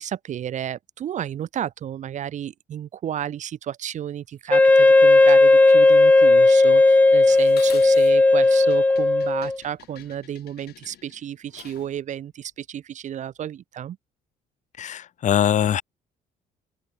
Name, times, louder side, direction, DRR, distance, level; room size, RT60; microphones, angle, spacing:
voice 1, 0.0-14.0, right 10 dB, 45° right, 0.6 m, -32 dB
Wind instrument woodwind instrument, 4.5-9.6, left 2 dB, 10° left, 0.4 m, -15 dB
Dishes pots and pans, 7.3-12.0, left 13 dB, 70° left, 6.1 m, -46 dB
voice 2, 14.8-15.8, left 10 dB, 45° left, 0.8 m, -22 dB
open air
cardioid pair, 110°, 17 cm